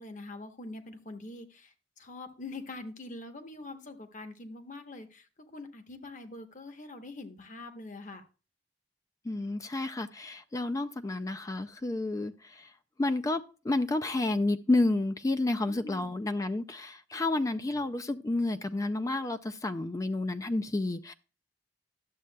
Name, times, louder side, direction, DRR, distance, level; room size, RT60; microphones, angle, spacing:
voice 1, 0.0-8.2 15.7-16.1, left 2 dB, 45° left, 7 dB, 1.0 m, -44 dB
voice 2, 9.2-12.7 13.0-21.1, left 2 dB, 20° left, 10 dB, 0.3 m, -30 dB
12.0 x 7.4 x 2.2 m, 0.33 s
head